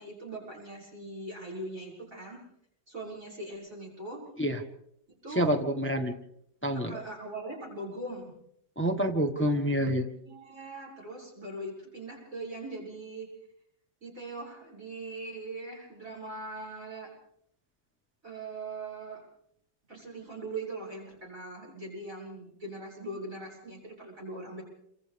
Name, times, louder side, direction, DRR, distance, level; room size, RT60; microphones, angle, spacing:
voice 1, 0.0-2.4 2.9-4.2 5.2-5.5 6.7-8.3 9.7-9.8 10.2-13.3 14.0-17.1 18.2-19.2 19.9-24.6, right 2 dB, 40° right, -3 dB, 7.6 m, -41 dB
voice 2, 5.3-6.1 6.6-6.9 8.8-10.0, equal, 5° left, 5 dB, 1.2 m, -27 dB
28.5 x 26.0 x 3.5 m, 0.73 s
omnidirectional pair, 2.1 m